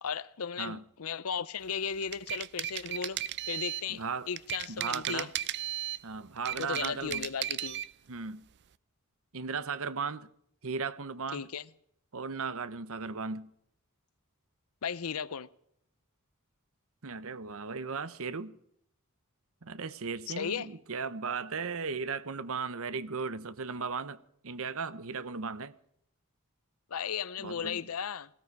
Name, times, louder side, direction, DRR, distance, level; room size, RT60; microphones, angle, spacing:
voice 1, 0.0-3.2 3.5-5.3 6.6-7.8 11.3-11.6 14.8-15.5 20.3-20.7 26.9-28.3, left 7 dB, 70° left, 0.7 m, -36 dB
sound 1, 1.9-3.9 4.4-6.0 6.4-7.9, right 12 dB, 50° right, 0.5 m, -35 dB
voice 2, 3.9-4.3 4.7-5.3 6.0-7.3 8.1-8.4 9.3-10.3 10.6-11.5 12.1-13.5 17.0-18.6 19.6-25.7 27.4-27.8, right 5 dB, 65° right, 0.9 m, -36 dB
18.0 x 16.5 x 4.8 m
head